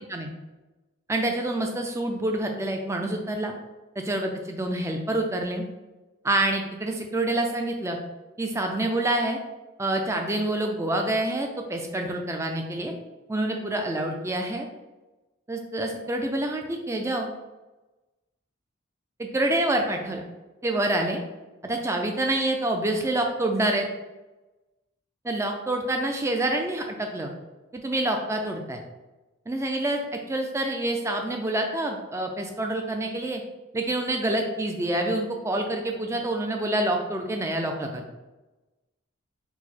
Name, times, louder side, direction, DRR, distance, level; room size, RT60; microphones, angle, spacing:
voice 1, 1.1-3.5 4.0-5.6 6.2-8.0 8.4-9.4 9.8-12.9 13.3-14.7 15.5-17.3 19.2-20.2 20.6-21.2 21.6-23.9 25.2-27.3 27.7-28.8 29.5-33.4 33.7-38.0, right 1 dB, 15° right, 3 dB, 0.4 m, -27 dB
4.6 x 2.1 x 4.1 m, 1.1 s
head